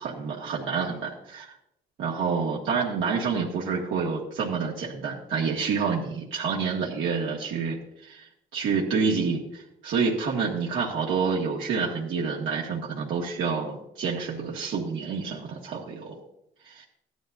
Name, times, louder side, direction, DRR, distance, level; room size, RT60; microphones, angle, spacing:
voice 1, 0.0-1.5 2.0-7.8 8.0-16.2 16.7-16.8, right 5 dB, 85° right, -3 dB, 1.9 m, -28 dB
15.5 x 11.0 x 2.6 m, 0.80 s
cardioid pair, 90°, 20 cm